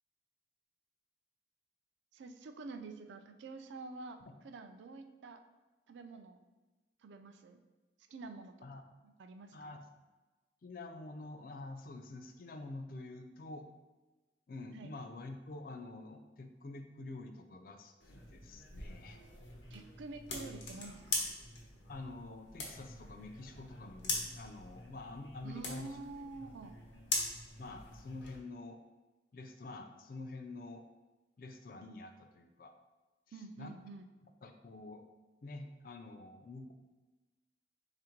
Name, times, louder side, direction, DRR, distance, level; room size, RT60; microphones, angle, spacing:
voice 1, 2.1-5.4 5.9-6.4 7.0-7.6 8.1-8.5 9.0-9.8 14.7-14.9 19.7-21.3 25.4-26.7 33.3-34.1, right 3 dB, 80° right, 7 dB, 0.3 m, -48 dB
voice 2, 9.5-9.8 10.6-13.7 14.5-19.2 21.9-26.0 26.4-26.5 26.9-27.0 27.6-28.8 29.3-30.8 31.4-32.7 33.3-33.8 34.4-35.0 35.4-36.7, left 2 dB, 50° left, 6 dB, 0.4 m, -47 dB
sound 1, 18.0-28.4, left 3 dB, 90° left, 0.9 m, -42 dB
3.5 x 2.5 x 4.4 m, 1.1 s
head